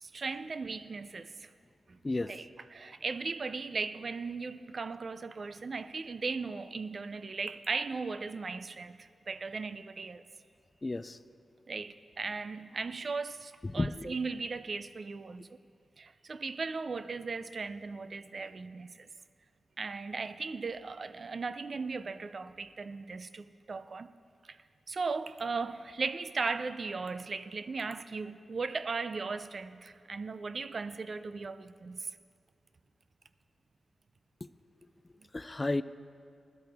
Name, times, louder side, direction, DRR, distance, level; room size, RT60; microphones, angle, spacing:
voice 1, 0.0-1.5 1.9-2.0 2.3-10.2 11.7-15.5 16.0-19.1 19.8-24.1 24.5-24.6 24.9-32.1, right 4 dB, 50° right, 0.5 m, -37 dB
voice 2, 10.8-11.2 13.7-14.1 35.3-35.8, left 2 dB, 25° left, 0.3 m, -32 dB
21.0 x 12.0 x 3.5 m
wide cardioid pair, 110°, 0 cm